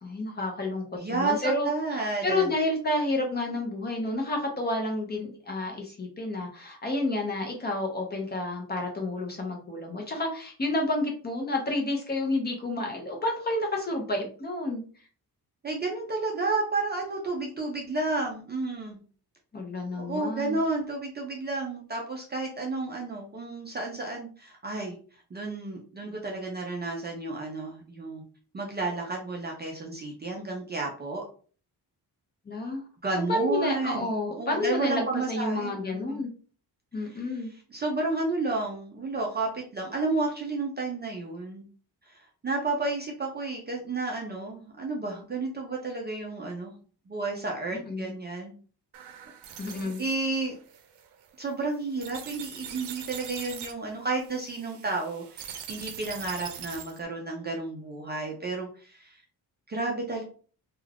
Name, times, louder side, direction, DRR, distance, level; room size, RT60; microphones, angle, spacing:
voice 1, 0.0-14.8 19.5-20.6 32.5-32.8 33.3-36.3 36.9-37.5 47.7-48.1 49.6-50.0, left 2 dB, 25° left, 1 dB, 0.5 m, -30 dB
voice 2, 1.0-2.5 15.6-19.0 20.0-28.2 28.5-31.2 33.0-36.2 37.0-37.2 37.7-41.7 42.1-48.5 49.8-50.6 51.4-59.2 59.7-60.2, right 3 dB, 25° right, 0 dB, 0.4 m, -32 dB
sound 1, 48.9-57.0, right 8 dB, 80° right, 0.6 m, -43 dB
2.3 x 2.3 x 3.3 m, 0.41 s
wide cardioid pair, 175°, 40 cm